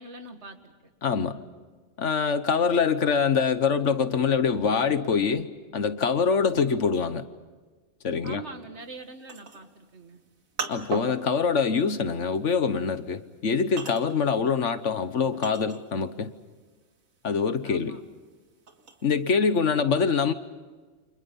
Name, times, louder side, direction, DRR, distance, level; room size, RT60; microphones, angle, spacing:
voice 1, 0.0-0.9 8.2-10.2 17.6-18.0, right 2 dB, 55° right, 6 dB, 2.2 m, -43 dB
voice 2, 1.0-1.4 2.0-5.5 5.7-7.3 8.0-8.4 10.7-16.3 17.2-18.0 19.0-20.3, left 5 dB, 65° left, 11 dB, 1.4 m, -24 dB
sound 1, 8.9-16.2 16.5-19.4, right 4 dB, 85° right, 2.3 m, -39 dB
30.0 x 27.0 x 5.5 m, 1.4 s
omnidirectional pair, 1.4 m